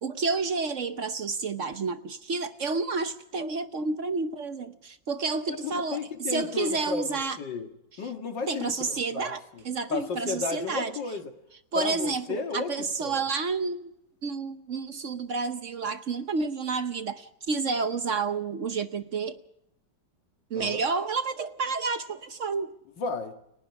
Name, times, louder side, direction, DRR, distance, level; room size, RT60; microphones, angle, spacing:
voice 1, 0.0-7.4 8.5-10.9 11.7-13.9 14.2-19.4 20.5-22.7, right 4 dB, 50° right, 1.1 m, -30 dB
voice 2, 5.5-7.7 8.0-9.6 9.9-11.3 11.7-13.2 20.6-20.8 23.0-23.3, left 4 dB, 85° left, 2.5 m, -33 dB
30.0 x 18.5 x 4.8 m
omnidirectional pair, 1.9 m